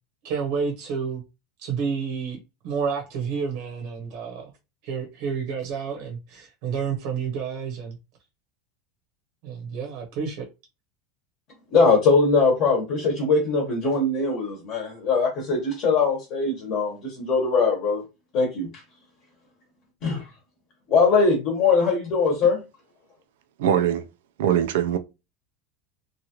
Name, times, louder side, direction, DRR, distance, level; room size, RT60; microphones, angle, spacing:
voice 1, 0.2-1.2 1.6-4.4 4.8-8.0 9.4-10.5, right 6 dB, 60° right, 0.9 m, -30 dB
voice 2, 11.7-18.0 18.3-18.7 20.0-20.2 20.9-22.6, left 4 dB, 40° left, 1.0 m, -21 dB
voice 3, 23.6-24.1 24.4-25.0, right 9 dB, 80° right, 0.4 m, -21 dB
3.0 x 2.4 x 2.8 m
supercardioid pair, 160°, 0 cm